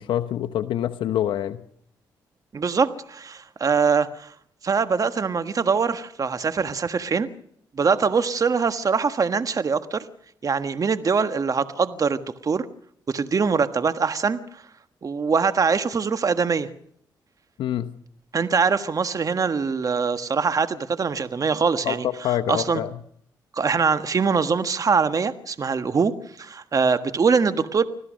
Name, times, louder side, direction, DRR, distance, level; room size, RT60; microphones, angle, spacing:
voice 1, 0.0-1.6 17.6-17.9 21.8-21.9 22.2-22.9, left 11 dB, 85° left, 9 dB, 1.0 m, -25 dB
voice 2, 2.5-4.3 4.6-7.3 7.8-10.0 10.4-12.7 13.1-14.6 15.0-16.7 18.3-22.8 23.5-27.8, right 5 dB, 45° right, 10 dB, 1.4 m, -23 dB
25.5 x 16.5 x 6.4 m, 0.67 s
cardioid pair, 70°, 8 cm